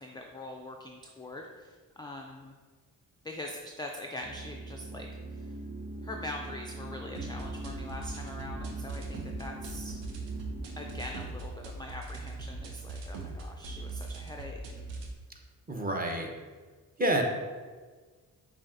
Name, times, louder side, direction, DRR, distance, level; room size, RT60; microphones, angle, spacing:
voice 1, 0.0-2.6 3.2-5.1 5.4-5.5 6.0-10.0 10.8-14.6 16.4-16.5, left 1 dB, 10° left, 1 dB, 0.3 m, -43 dB
sound 1, 4.2-11.0, right 2 dB, 55° right, 1.2 m, -42 dB
sound 2, 7.1-15.1, right 3 dB, 80° right, 0.7 m, -41 dB
voice 2, 15.7-16.3 17.0-17.2, right 1 dB, 20° right, 2 dB, 0.8 m, -28 dB
7.0 x 2.5 x 2.6 m, 1.4 s
supercardioid pair, 40°, 43 cm